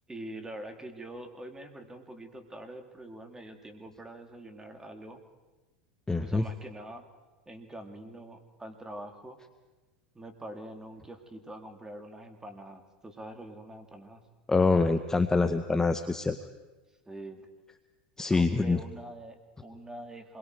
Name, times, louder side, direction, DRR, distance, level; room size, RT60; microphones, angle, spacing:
voice 1, 0.1-5.2 6.2-7.1 7.5-9.4 10.1-14.2 17.0-17.5 18.3-20.4, right 1 dB, 10° right, 6 dB, 2.9 m, -44 dB
voice 2, 6.1-6.4 14.5-16.4 18.2-18.8, left 3 dB, 10° left, 8 dB, 1.0 m, -25 dB
27.0 x 22.5 x 4.8 m, 1.2 s
hypercardioid pair, 105°, 5 cm